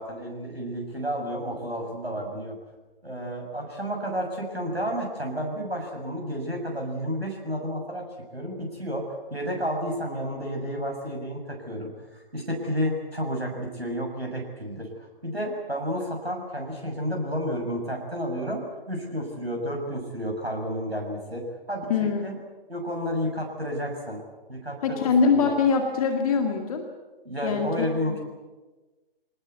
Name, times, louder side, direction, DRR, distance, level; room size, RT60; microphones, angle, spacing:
voice 1, 0.0-2.6 3.0-8.1 8.3-22.4 22.7-24.2 24.5-25.6 27.2-28.2, equal, 85° right, 0 dB, 6.7 m, -31 dB
voice 2, 21.9-22.2 24.8-26.8 27.4-28.2, left 5 dB, 35° left, 4 dB, 2.2 m, -23 dB
27.0 x 19.5 x 8.3 m, 1.2 s
figure-of-eight pair, 130°, 30 cm